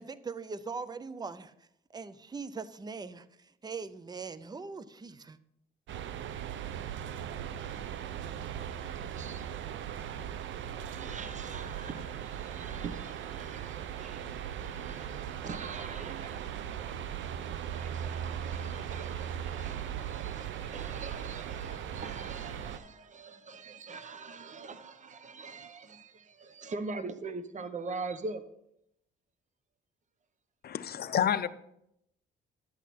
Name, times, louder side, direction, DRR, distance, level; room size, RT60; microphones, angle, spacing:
voice 1, 0.0-1.5 1.9-5.4, right 4 dB, 20° right, 0.6 m, -41 dB
sound 1, 5.9-22.8, right 9 dB, 70° right, 0.6 m, -38 dB
voice 2, 8.8-9.8 10.8-28.4, right 3 dB, 40° right, 0.9 m, -43 dB
voice 3, 30.6-31.5, left 9 dB, 50° left, 0.6 m, -29 dB
11.5 x 8.2 x 4.2 m
cardioid pair, 90°, 20 cm